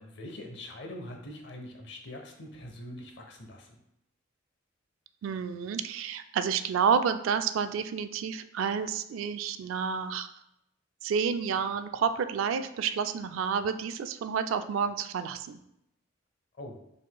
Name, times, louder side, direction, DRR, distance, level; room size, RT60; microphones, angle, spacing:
voice 1, 0.0-3.8 16.5-16.8, left 1 dB, 55° left, 3 dB, 0.7 m, -43 dB
voice 2, 5.2-10.3 11.0-15.6, right 6 dB, 80° right, 10 dB, 0.3 m, -29 dB
4.9 x 3.7 x 2.2 m, 0.80 s
head